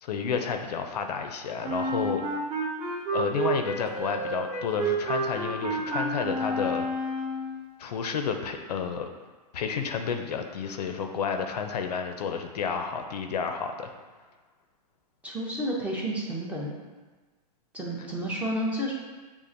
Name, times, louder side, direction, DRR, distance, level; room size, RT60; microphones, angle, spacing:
voice 1, 0.0-2.2 3.1-6.9 7.8-9.1 9.5-13.9, left 6 dB, 75° left, 5 dB, 0.5 m, -31 dB
Wind instrument woodwind instrument, 1.6-7.6, right 2 dB, 25° right, 1.1 m, -30 dB
voice 2, 15.2-16.7 17.7-18.9, equal, 5° right, -4 dB, 0.6 m, -30 dB
6.8 x 2.5 x 2.5 m, 1.3 s
hypercardioid pair, 140°, 21 cm